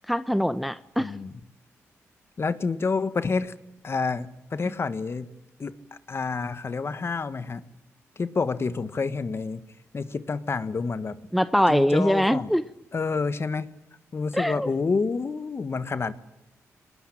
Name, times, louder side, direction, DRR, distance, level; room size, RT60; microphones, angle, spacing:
voice 1, 0.1-1.1 11.3-12.6 14.3-14.7, equal, ahead, 14 dB, 0.8 m, -23 dB
voice 2, 1.0-1.3 2.4-3.5 3.8-5.3 5.6-5.8 6.1-7.6 8.2-9.6 9.9-11.2 11.7-12.5 12.9-13.7 14.1-16.1, left 4 dB, 45° left, 13 dB, 1.5 m, -28 dB
22.5 x 20.0 x 8.8 m, 0.85 s
cardioid pair, 60°, 6 cm